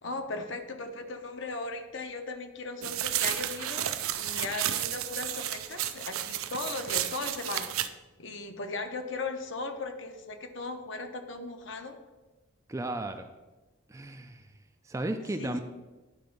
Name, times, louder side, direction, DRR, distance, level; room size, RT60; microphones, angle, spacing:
voice 1, 0.0-11.9 15.4-15.6, left 3 dB, 60° left, 6 dB, 0.8 m, -37 dB
sound 1, 2.8-7.9, right 12 dB, 80° right, 0.4 m, -32 dB
voice 2, 12.7-13.3 13.9-14.5 14.9-15.6, right 2 dB, 15° right, 7 dB, 0.3 m, -34 dB
9.9 x 3.4 x 5.2 m, 1.2 s
head